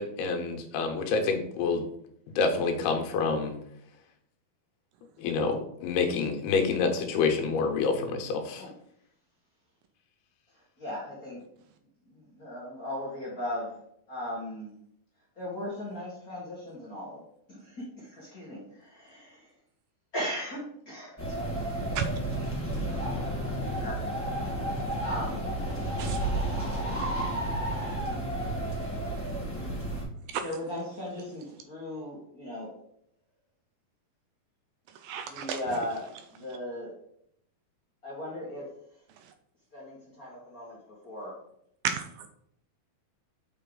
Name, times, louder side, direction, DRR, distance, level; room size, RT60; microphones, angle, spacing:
voice 1, 0.0-1.8 2.4-3.5 5.2-8.7, left 4 dB, 85° left, 4 dB, 2.9 m, -27 dB
voice 2, 10.8-11.4 12.1-13.8 14.1-14.7 15.4-17.2 17.5-19.5 20.1-21.6 22.9-24.0 25.0-25.6 27.7-28.0 30.4-32.7 35.2-36.9 38.0-38.7 39.7-40.8 41.0-41.3, left 1 dB, 55° left, -6 dB, 1.0 m, -38 dB
sound 1, 21.2-30.0, right 1 dB, 10° left, 0.7 m, -31 dB
voice 3, 26.0-26.3 30.3-30.4 35.0-35.6 41.8-42.3, right 8 dB, 80° right, 8 dB, 2.1 m, -32 dB
6.8 x 5.0 x 3.8 m, 0.72 s
omnidirectional pair, 4.4 m